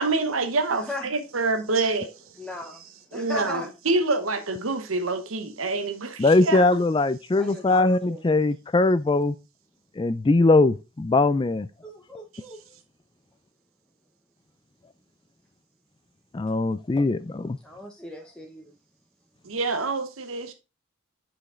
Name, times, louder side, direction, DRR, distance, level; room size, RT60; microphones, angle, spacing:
voice 1, 0.0-2.1 3.1-6.6 19.4-20.5, right 3 dB, 90° right, 1.0 m, -26 dB
voice 2, 0.7-1.1 2.4-3.7 7.3-8.2 11.8-12.6 17.6-18.7, left 1 dB, 5° left, 0.9 m, -38 dB
voice 3, 6.2-9.4 10.0-11.7 16.3-17.6, left 2 dB, 25° left, 0.4 m, -21 dB
8.5 x 5.2 x 3.7 m
head